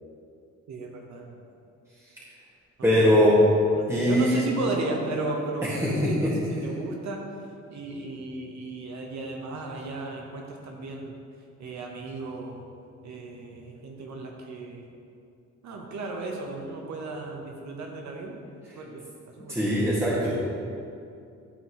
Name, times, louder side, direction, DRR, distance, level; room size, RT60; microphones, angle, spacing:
voice 1, 0.7-1.3 2.8-7.2 7.7-11.1 11.6-12.6 13.0-14.9 15.6-18.4 18.7-19.0 19.4-19.7, right 2 dB, 65° right, 0 dB, 1.1 m, -35 dB
voice 2, 2.8-3.4 3.9-4.4 5.6-6.3 19.5-20.4, equal, 10° right, -9 dB, 1.8 m, -22 dB
12.5 x 4.5 x 3.1 m, 2.5 s
cardioid pair, 90°, 30 cm